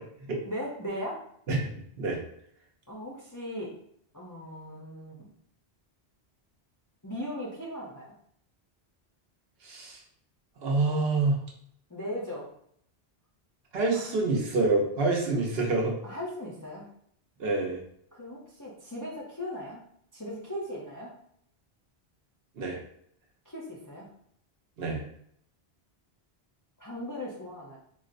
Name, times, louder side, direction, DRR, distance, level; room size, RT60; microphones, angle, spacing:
voice 1, 0.5-1.2 2.9-3.8 4.1-5.3 7.0-8.1 11.9-12.5 13.9-14.1 16.0-16.9 18.1-19.8 20.1-21.1 23.5-24.1 26.8-27.8, equal, 30° left, -5 dB, 0.4 m, -38 dB
voice 2, 1.5-2.2 9.6-10.0 10.6-11.4 13.7-16.0 17.4-17.8 22.6-22.8 24.8-25.0, right 3 dB, 75° right, -1 dB, 1.0 m, -27 dB
4.1 x 2.1 x 2.5 m, 0.68 s
omnidirectional pair, 1.0 m